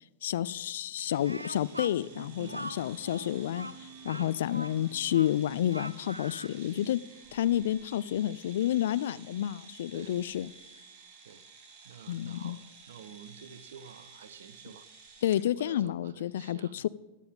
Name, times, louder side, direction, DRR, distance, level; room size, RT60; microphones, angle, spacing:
voice 1, 0.2-3.7 4.0-7.0 7.3-10.5 12.1-12.6 15.2-16.9, left 12 dB, 60° left, 18 dB, 0.3 m, -30 dB
sound 1, 1.0-15.5, right 4 dB, 45° right, 2.1 m, -53 dB
Speech, 1.2-6.6, right 1 dB, 85° right, 0.4 m, -43 dB
sound 2, 1.9-8.1, right 5 dB, 30° left, 5.2 m, -55 dB
voice 2, 2.4-2.8 4.1-4.4 6.6-6.9 9.9-10.2 11.2-11.5 11.8-14.9 15.6-16.8, right 7 dB, 60° right, 14 dB, 0.8 m, -50 dB
16.5 x 11.5 x 3.6 m, 1.1 s
figure-of-eight pair, 90°, 0 cm